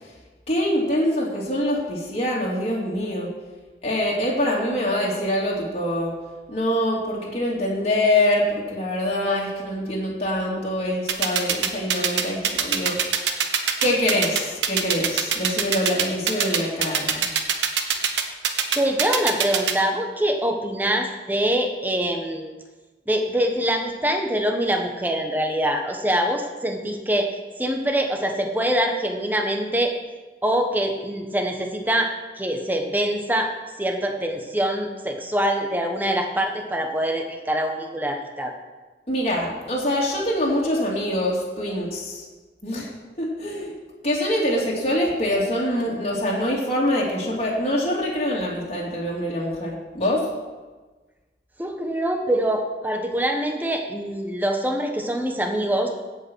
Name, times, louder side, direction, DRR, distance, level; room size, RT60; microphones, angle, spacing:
voice 1, 0.5-3.3 3.8-6.1 6.5-13.0 13.8-17.3 39.1-42.2 42.6-42.9 43.2-43.7 44.0-50.2, left 1 dB, 35° left, -5 dB, 2.5 m, -24 dB
sound 1, 11.1-19.7, right 8 dB, 90° right, 1.1 m, -22 dB
voice 2, 18.7-22.5 23.1-27.3 27.6-29.9 30.4-32.1 32.4-33.5 33.8-38.5 51.6-55.9, right 1 dB, 10° right, 3 dB, 1.2 m, -24 dB
16.5 x 5.6 x 6.2 m, 1.3 s
head